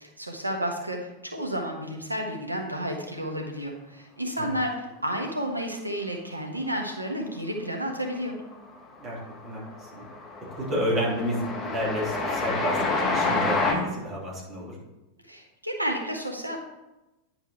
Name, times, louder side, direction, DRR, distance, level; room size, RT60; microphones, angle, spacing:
voice 1, 0.0-8.4 15.3-16.6, equal, 85° right, 2 dB, 1.2 m, -31 dB
Train, 8.0-8.5 8.8-13.7, left 3 dB, 20° left, 1.2 m, -28 dB
voice 2, 10.5-12.8 13.1-14.7, equal, 25° right, -5 dB, 3.3 m, -30 dB
10.0 x 4.7 x 4.5 m, 1.0 s
figure-of-eight pair, 90°, 0 cm